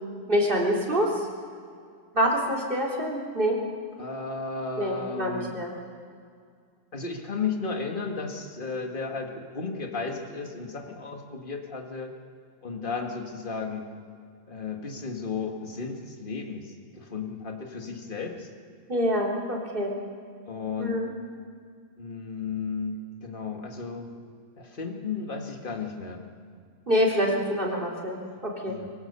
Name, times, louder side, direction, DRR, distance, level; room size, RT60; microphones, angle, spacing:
voice 1, 0.3-1.1 2.1-3.6 4.8-5.7 18.9-19.9 20.8-21.1 26.9-28.8, equal, 40° right, -2 dB, 3.7 m, -26 dB
voice 2, 4.0-5.6 6.9-12.1 12.6-13.9 14.5-18.5 20.5-21.0 22.0-24.1 24.6-26.2 28.7-28.9, left 4 dB, 40° left, 3 dB, 2.0 m, -34 dB
24.5 x 16.5 x 6.8 m, 2.2 s
omnidirectional pair, 1.5 m